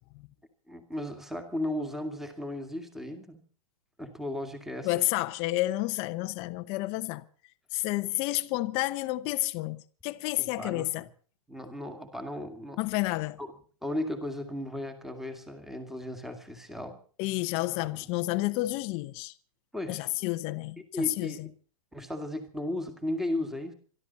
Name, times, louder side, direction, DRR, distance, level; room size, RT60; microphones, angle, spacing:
voice 1, 0.7-3.4 4.0-5.0 10.4-11.1 11.5-12.8 13.4-13.5 13.8-17.0 17.8-18.0 19.7-20.1 20.9-21.5 21.9-23.7, left 1 dB, ahead, 2.1 m, -35 dB
voice 2, 4.8-7.2 7.7-11.1 12.8-13.4 17.2-19.3 19.9-21.5, left 19 dB, 30° left, 0.9 m, -30 dB
26.0 x 12.5 x 4.2 m
hypercardioid pair, 145°, 19 cm